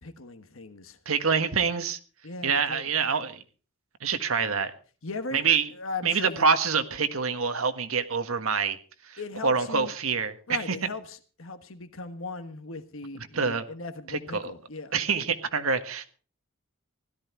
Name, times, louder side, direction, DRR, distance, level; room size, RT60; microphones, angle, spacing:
voice 1, 0.0-1.0 2.2-2.9 5.0-5.4 5.7-6.5 9.2-9.9 10.5-14.9, left 3 dB, 70° left, 1.4 m, -38 dB
voice 2, 1.0-2.0 2.4-3.4 4.0-4.7 5.3-5.7 6.0-8.8 9.0-10.8 13.3-13.6 14.1-14.5 14.9-16.1, right 5 dB, 80° right, 1.6 m, -26 dB
16.5 x 13.0 x 4.6 m
head